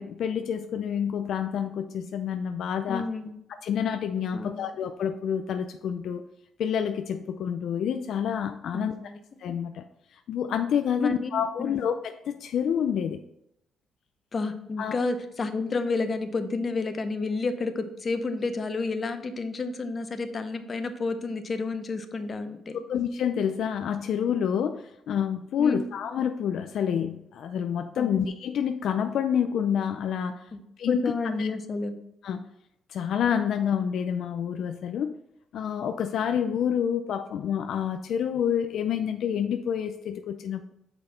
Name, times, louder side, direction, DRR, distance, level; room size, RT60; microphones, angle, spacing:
voice 1, 0.0-3.1 3.6-6.2 6.6-8.9 9.4-9.8 10.3-13.2 14.8-14.9 22.9-30.4 30.8-31.0 31.4-31.5 32.2-32.4 32.9-35.1 35.5-40.7, left 8 dB, 70° left, 7 dB, 0.4 m, -28 dB
voice 2, 2.9-3.4 4.3-4.7 8.7-9.2 11.0-11.8 14.3-22.8 25.6-25.9 28.0-28.1 30.5-30.6 30.9-32.0, left 3 dB, 40° left, 8 dB, 0.7 m, -30 dB
6.0 x 5.1 x 4.2 m, 0.79 s
cardioid pair, 90°, 0 cm